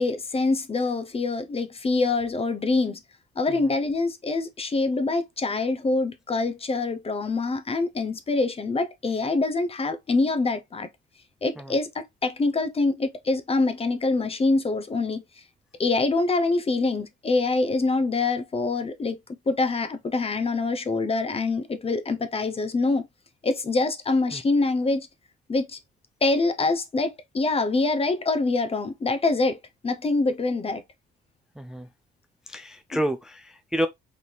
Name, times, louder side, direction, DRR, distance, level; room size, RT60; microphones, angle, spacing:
voice 1, 0.0-3.0 3.4-10.9 11.4-15.2 15.8-19.2 19.5-23.1 23.4-25.1 25.5-25.8 26.2-29.6 29.8-30.8 32.9-33.0, left 3 dB, 30° left, 0.7 m, -25 dB
voice 2, 31.6-31.9 32.5-33.9, equal, 5° right, 0.4 m, -29 dB
4.0 x 2.7 x 3.2 m
cardioid pair, 90°, 20 cm